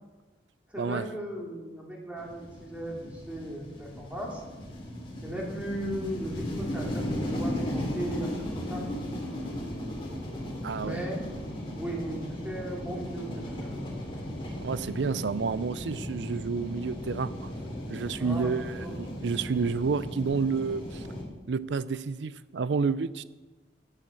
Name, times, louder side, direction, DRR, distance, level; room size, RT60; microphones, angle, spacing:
voice 1, 0.7-4.4 5.2-8.8 10.8-11.3 11.8-13.8 18.2-19.0, right 1 dB, 10° right, -2 dB, 2.6 m, -37 dB
sound 1, 2.2-21.2, equal, 30° left, 2.7 m, -36 dB
voice 2, 10.6-11.0 14.6-17.5 17.9-21.0 21.5-23.2, right 5 dB, 90° right, 16 dB, 0.5 m, -30 dB
10.5 x 9.0 x 6.9 m, 1.2 s
head